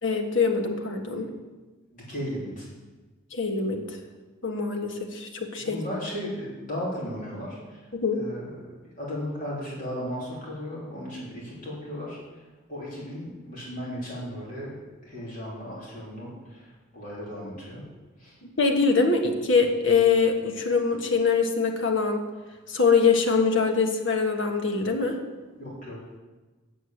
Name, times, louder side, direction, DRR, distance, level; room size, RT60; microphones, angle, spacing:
voice 1, 0.0-1.3 3.3-4.0 4.4-5.8 7.9-8.2 18.6-22.2 22.7-25.2, left 5 dB, 65° left, 3 dB, 1.4 m, -23 dB
voice 2, 1.9-2.7 5.6-7.9 8.1-14.7 15.0-17.8 18.2-18.4 25.6-26.2, equal, 40° left, -6 dB, 3.5 m, -36 dB
8.2 x 7.7 x 7.7 m, 1.2 s
head